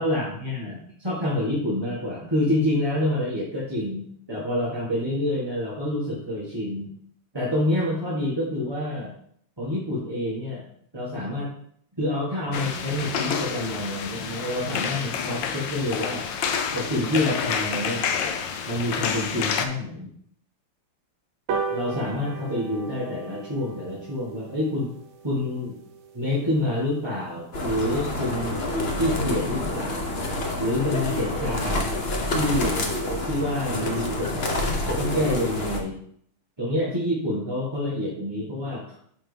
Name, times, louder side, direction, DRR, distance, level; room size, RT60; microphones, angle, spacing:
voice 1, 0.0-6.9 7.3-9.1 9.6-10.6 10.9-11.5 12.0-16.3 16.7-18.1 18.7-20.1 21.7-24.9 25.2-25.7 26.1-28.6 28.9-30.0 30.6-31.9 32.3-32.8 33.2-34.5 34.9-36.0 36.6-39.0, left 1 dB, 15° right, -8 dB, 1.3 m, -27 dB
sound 1, 12.5-19.6, left 7 dB, 70° left, 1.3 m, -29 dB
sound 2, 21.5-28.2 28.7-28.8 29.1-29.2 29.5-29.6 29.8-29.9 30.2-30.5 30.9-31.0, right 5 dB, 80° right, 1.6 m, -37 dB
sound 3, 27.5-35.8, left 1 dB, 50° left, 0.7 m, -27 dB
9.3 x 4.3 x 3.4 m, 0.65 s
omnidirectional pair, 2.4 m